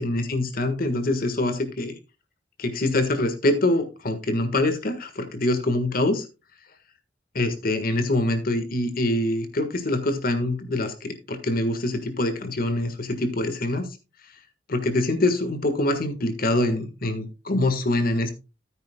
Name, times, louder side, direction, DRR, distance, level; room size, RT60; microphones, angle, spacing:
voice 1, 0.0-2.0 2.6-6.2 7.3-13.9 14.7-18.3, left 1 dB, 50° left, 8 dB, 1.5 m, -24 dB
14.0 x 9.4 x 2.2 m, 0.28 s
head